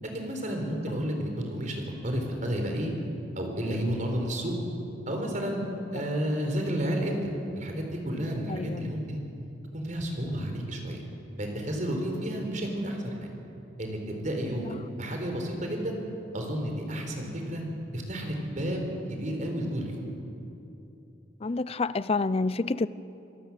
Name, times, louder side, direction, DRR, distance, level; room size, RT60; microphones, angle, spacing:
voice 1, 0.0-2.9 3.4-4.6 5.1-5.6 5.9-7.2 7.6-9.2 9.7-11.0 11.4-13.3 13.8-16.0 16.3-17.6 17.9-18.8 19.1-20.0, equal, 45° right, 2 dB, 4.1 m, -31 dB
voice 2, 8.5-8.9 21.4-22.9, left 3 dB, 30° left, 17 dB, 0.5 m, -28 dB
27.0 x 17.5 x 7.5 m, 2.9 s
head